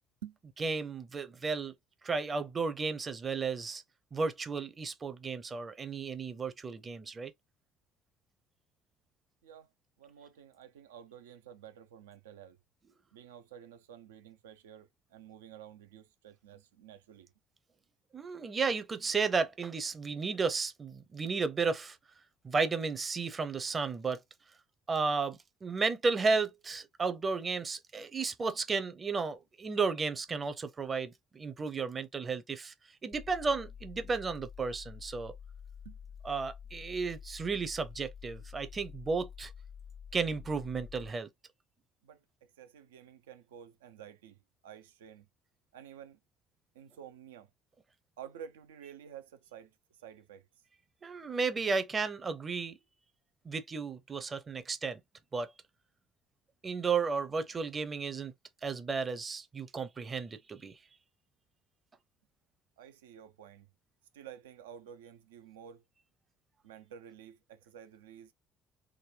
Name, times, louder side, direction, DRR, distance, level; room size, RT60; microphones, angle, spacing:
voice 1, 0.6-1.7 2.0-3.8 4.1-7.3 18.1-22.0 22.4-24.2 24.9-32.7 33.0-35.3 36.2-39.5 40.1-41.3 51.0-52.8 53.4-55.0 55.3-55.5 56.6-58.3 58.6-60.8, right 4 dB, 30° right, 0.7 m, -33 dB
voice 2, 10.0-12.6 13.1-17.3 35.8-36.0 42.0-45.3 45.7-46.2 46.7-47.5 48.2-49.7 50.0-50.5 62.8-63.7 64.1-65.8 66.6-68.3, right 9 dB, 75° right, 0.5 m, -51 dB
sound 1, 33.1-41.1, left 7 dB, 40° left, 0.4 m, -49 dB
3.7 x 2.2 x 3.2 m
figure-of-eight pair, 55°, 0 cm